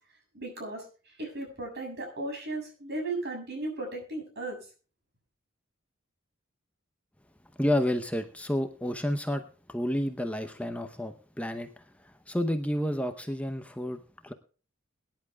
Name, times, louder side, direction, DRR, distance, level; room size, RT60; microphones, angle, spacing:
voice 1, 0.3-4.6, right 2 dB, 55° right, 2 dB, 7.1 m, -36 dB
voice 2, 7.6-14.3, left 1 dB, 5° left, 7 dB, 0.8 m, -31 dB
22.5 x 10.5 x 2.3 m, 0.37 s
head